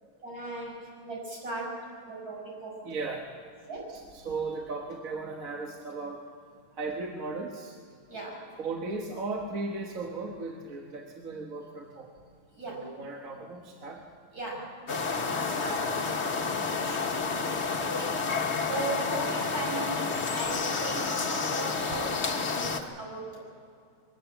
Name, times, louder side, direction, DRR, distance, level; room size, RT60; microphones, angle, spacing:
voice 1, 0.2-1.8 2.1-2.8 3.7-3.9 8.1-8.5 12.5-13.0 14.3-17.3 17.8-18.2 18.6-23.4, right 2 dB, 85° right, -2 dB, 6.1 m, -38 dB
voice 2, 2.8-3.2 4.1-6.2 6.8-7.7 8.6-12.1 13.0-14.0, right 3 dB, 65° right, 1 dB, 1.7 m, -36 dB
sound 1, 14.9-22.8, left 4 dB, 50° left, 1.5 m, -30 dB
22.0 x 14.0 x 8.9 m, 2.3 s
omnidirectional pair, 1.6 m